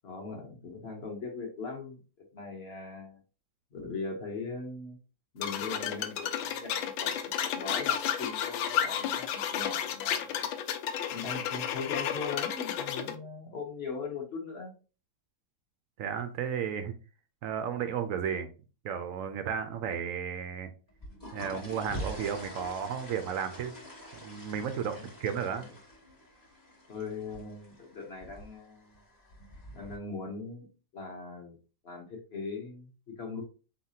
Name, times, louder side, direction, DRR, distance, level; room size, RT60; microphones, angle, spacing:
voice 1, 0.0-2.0 2.3-3.2 3.7-5.0 5.3-10.5 11.1-14.7 25.0-25.1 25.5-25.6 26.9-29.0 29.7-31.6 31.8-33.4, left 4 dB, 40° left, 2 dB, 1.1 m, -40 dB
sound 1, 5.4-13.1, left 9 dB, 85° left, 1.4 m, -32 dB
voice 2, 16.0-16.9 17.4-18.5 18.8-20.7 21.3-23.7 24.2-25.7, right 7 dB, 80° right, 8 dB, 0.7 m, -33 dB
sound 2, 20.9-30.0, equal, 15° left, 1.0 m, -45 dB
4.4 x 4.1 x 2.8 m, 0.34 s
omnidirectional pair, 2.1 m